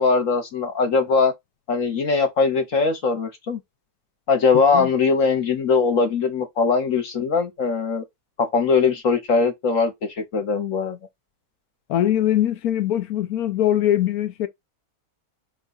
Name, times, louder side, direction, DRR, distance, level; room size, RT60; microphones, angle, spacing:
voice 1, 0.0-1.3 1.7-3.6 4.3-8.1 8.4-11.0, left 4 dB, 60° left, 1.2 m, -21 dB
voice 2, 11.9-14.5, left 12 dB, 75° left, 1.1 m, -22 dB
5.2 x 2.3 x 4.0 m
omnidirectional pair, 1.6 m